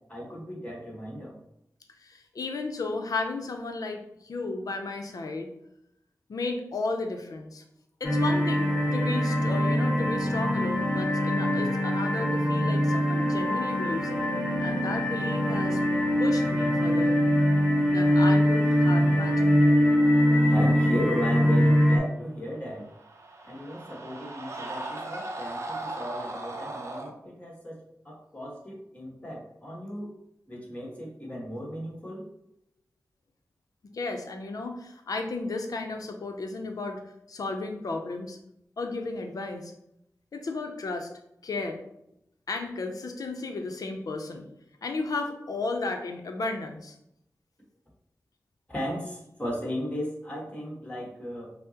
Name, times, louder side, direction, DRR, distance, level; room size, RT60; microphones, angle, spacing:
voice 1, 0.1-1.3 20.5-22.8 23.4-30.1 30.5-32.2 48.7-51.5, equal, 20° left, -4 dB, 1.4 m, -35 dB
voice 2, 2.0-5.5 6.3-7.6 8.0-15.8 16.2-17.2 17.9-19.6 33.9-37.0 37.3-38.4 38.8-39.7 40.3-41.1 41.4-41.8 42.5-44.5 44.8-46.9, left 3 dB, 75° left, 4 dB, 0.5 m, -34 dB
sound 1, 8.0-22.0, equal, 10° right, 1.3 m, -23 dB
sound 2, 22.6-27.1, right 2 dB, 50° right, 0.5 m, -37 dB
5.5 x 2.0 x 2.8 m, 0.81 s
wide cardioid pair, 65°, 6 cm